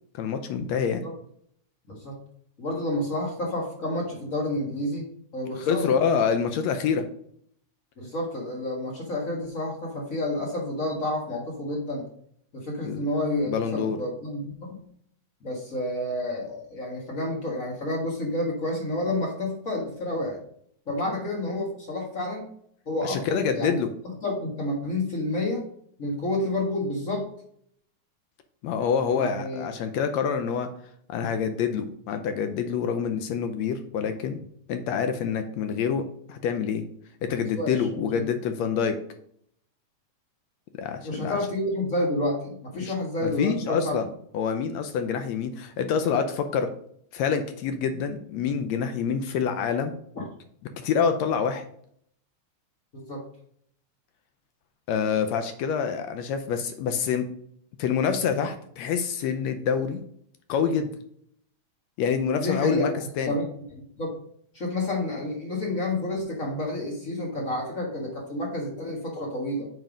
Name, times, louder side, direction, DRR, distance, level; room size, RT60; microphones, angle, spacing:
voice 1, 0.1-1.0 5.6-7.0 12.8-13.1 13.5-14.0 23.0-23.9 28.6-30.7 31.1-34.4 34.7-36.0 36.3-36.9 37.2-39.0 40.7-41.4 42.8-42.9 43.2-44.1 44.3-46.7 47.1-49.9 50.8-51.6 54.9-57.3 57.8-60.0 60.5-60.9 62.0-63.3, left 6 dB, 75° left, 8 dB, 1.7 m, -26 dB
voice 2, 2.6-5.0 5.3-5.9 8.0-12.0 12.5-14.7 15.4-20.4 20.9-22.4 22.8-23.8 24.0-25.6 26.0-27.3 29.1-29.7 37.6-38.2 41.0-43.9 50.1-50.3 52.9-53.2 62.4-62.9 63.2-63.4 63.7-64.1 64.5-69.7, left 1 dB, 35° left, -1 dB, 1.5 m, -29 dB
7.5 x 5.3 x 5.1 m, 0.64 s
omnidirectional pair, 3.5 m